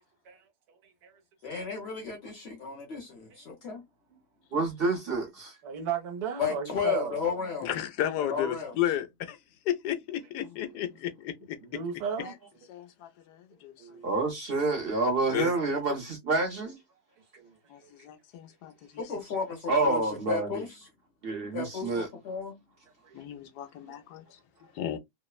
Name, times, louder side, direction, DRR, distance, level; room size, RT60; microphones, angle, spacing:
voice 1, 0.2-1.2 3.3-3.4 4.1-4.2 5.6-7.2 10.6-10.8 11.6-12.3 13.5-14.0 17.4-17.9 23.0-23.2, right 6 dB, 75° right, 1.3 m, -36 dB
voice 2, 1.4-3.8 6.4-7.7 8.2-8.7 19.0-20.0 20.3-20.7 21.5-22.6, left 6 dB, 55° left, 0.8 m, -33 dB
voice 3, 4.5-5.6 14.0-16.8 19.7-20.6 21.2-22.1, right 2 dB, 50° right, 0.8 m, -28 dB
voice 4, 7.6-9.4 9.7-11.6 12.2-12.3 12.7-13.7 15.3-15.5 17.7-19.0 23.1-24.2 24.7-25.0, left 11 dB, 85° left, 1.1 m, -33 dB
3.1 x 2.0 x 2.3 m
omnidirectional pair, 1.7 m